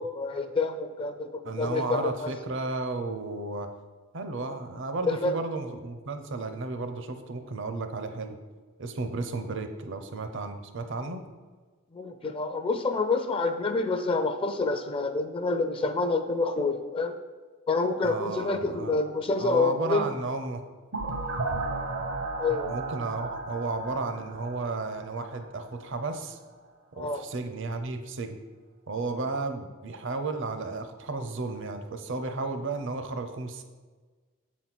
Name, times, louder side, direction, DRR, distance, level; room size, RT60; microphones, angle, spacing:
voice 1, 0.0-2.3 5.1-5.3 11.9-17.1 17.7-20.1 22.4-22.8 27.0-27.2, left 3 dB, 25° left, 8 dB, 0.4 m, -28 dB
voice 2, 1.4-3.7 4.1-8.4 8.8-11.2 18.0-19.0 19.4-20.6 22.7-26.4 27.0-28.4 28.9-33.6, right 3 dB, 65° right, 7 dB, 0.7 m, -33 dB
sound 1, 20.9-25.6, right 3 dB, 80° right, 1.1 m, -34 dB
7.2 x 4.2 x 6.0 m, 1.4 s
head